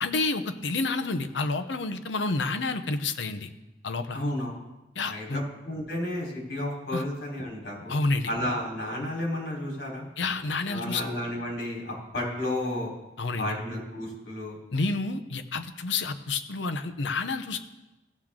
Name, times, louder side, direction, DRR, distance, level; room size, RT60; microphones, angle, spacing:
voice 1, 0.0-3.5 3.8-4.2 5.0-5.4 6.9-7.0 7.9-8.3 10.2-11.0 13.2-13.6 14.7-17.6, left 3 dB, 85° left, 9 dB, 0.8 m, -29 dB
voice 2, 4.1-4.5 5.0-8.0 8.2-10.1 10.7-12.9 13.3-14.6, left 1 dB, 65° left, -2 dB, 4.0 m, -32 dB
16.5 x 7.5 x 3.7 m, 1.0 s
head